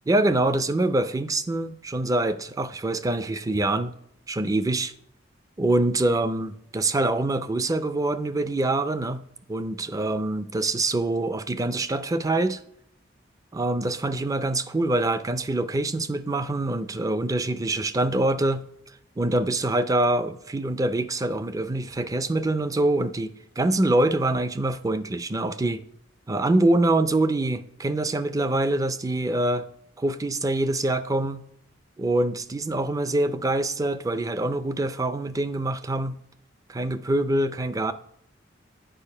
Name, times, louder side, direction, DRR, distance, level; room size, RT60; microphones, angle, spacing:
voice 1, 0.1-3.9 4.3-4.9 5.6-9.2 9.5-12.6 13.5-18.6 19.2-25.8 26.3-29.6 30.0-31.4 32.0-36.2 36.7-37.9, right 2 dB, 20° right, 0.4 m, -25 dB
9.0 x 4.8 x 5.4 m
head